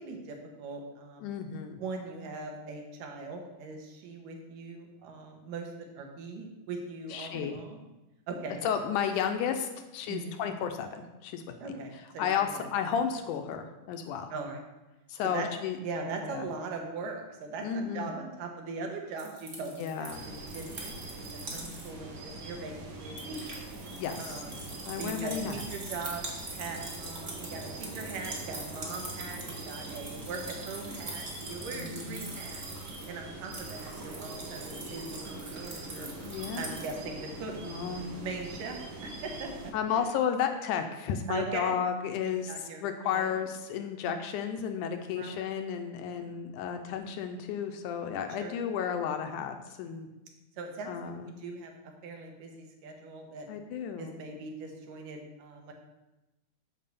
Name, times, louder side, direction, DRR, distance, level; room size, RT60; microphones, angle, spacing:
voice 1, 0.0-1.3 1.8-7.8 8.3-8.6 10.1-10.4 11.6-12.7 14.3-14.6 15.2-15.5 15.8-23.6 24.2-24.6 25.0-32.6 33.1-36.1 36.5-37.5 37.8-38.8 39.0-39.5 39.9-40.1 41.3-41.8 42.2-42.8 43.1-43.3 45.1-45.4 46.1-46.4 48.4-48.7 50.6-51.7 52.0-53.5 54.0-55.7, right 3 dB, 80° right, 2 dB, 2.8 m, -40 dB
voice 2, 1.2-1.8 7.1-7.6 8.6-11.4 12.2-14.3 15.1-15.8 16.2-16.5 17.6-18.1 19.6-20.2 24.0-24.4 24.9-25.6 31.7-32.2 36.2-36.7 37.6-38.2 39.7-50.1 50.9-51.3 53.5-54.2, left 8 dB, 75° left, 6 dB, 2.0 m, -33 dB
sound 1, 19.2-22.0 22.3-22.4 22.7-36.9, right 2 dB, 35° right, 1.1 m, -44 dB
sound 2, 20.1-39.7, right 2 dB, 60° right, 1.0 m, -43 dB
7.5 x 5.0 x 6.8 m, 1.0 s
omnidirectional pair, 3.8 m